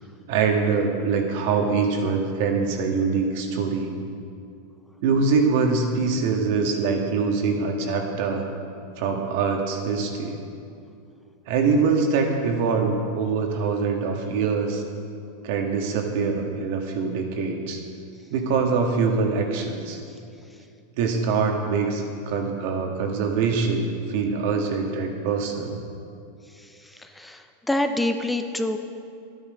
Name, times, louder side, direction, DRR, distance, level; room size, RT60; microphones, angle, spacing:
voice 1, 0.3-3.9 5.0-8.5 9.0-10.4 11.5-14.8 15.4-17.8 18.3-20.0 21.0-25.8, right 5 dB, 65° right, 3 dB, 1.7 m, -24 dB
voice 2, 27.2-28.8, left 1 dB, 5° left, 7 dB, 0.6 m, -26 dB
11.5 x 9.7 x 5.2 m, 2.5 s
hypercardioid pair, 110°, 0 cm